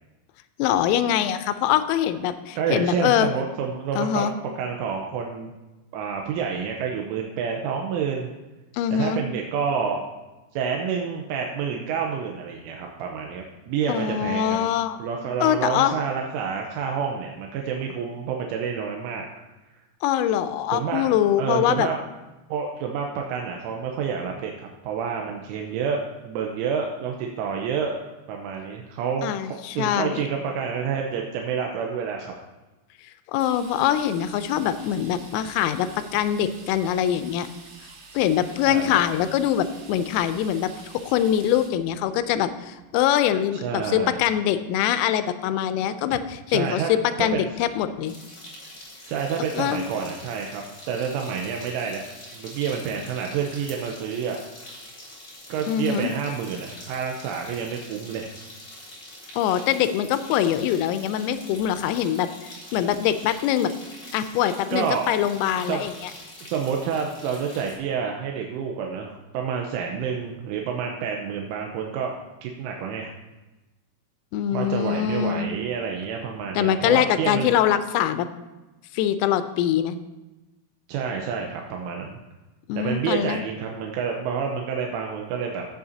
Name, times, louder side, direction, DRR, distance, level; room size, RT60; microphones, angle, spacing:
voice 1, 0.6-3.3 4.0-4.4 8.7-9.2 13.9-15.0 15.4-16.0 20.0-21.9 29.2-30.3 33.3-37.5 38.1-48.1 49.5-49.8 55.7-56.1 59.4-62.3 62.7-63.7 64.1-66.1 74.3-75.5 76.6-78.3 78.9-80.0 82.7-83.4, left 10 dB, 90° left, 11 dB, 3.2 m, -23 dB
voice 2, 2.6-4.3 4.6-5.5 5.9-8.3 8.9-10.0 10.5-14.6 15.0-19.3 20.7-21.1 21.4-22.0 22.5-28.0 28.3-32.3 38.7-39.0 43.5-44.2 46.5-46.9 47.2-47.5 49.1-52.0 52.3-54.4 55.5-58.3 64.7-65.2 65.7-66.1 66.4-72.2 72.4-73.1 74.5-77.5 80.9-82.2 82.8-85.7, right 6 dB, 85° right, 1 dB, 3.2 m, -28 dB
sound 1, 33.4-41.7, right 3 dB, 60° right, 3.1 m, -47 dB
sound 2, 48.1-67.7, left 1 dB, 25° left, 2.1 m, -44 dB
16.5 x 7.8 x 2.8 m, 1.1 s
omnidirectional pair, 5.7 m